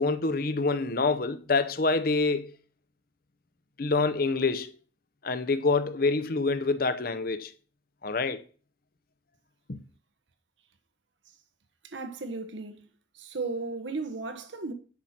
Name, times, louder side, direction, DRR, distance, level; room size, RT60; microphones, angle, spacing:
voice 1, 0.0-2.5 3.8-4.7 5.2-7.5 8.0-8.4 9.7-9.8, left 3 dB, 55° left, 0.7 m, -26 dB
voice 2, 11.8-12.9 13.1-14.7, right 3 dB, 90° right, 1.1 m, -35 dB
10.5 x 5.8 x 4.3 m
head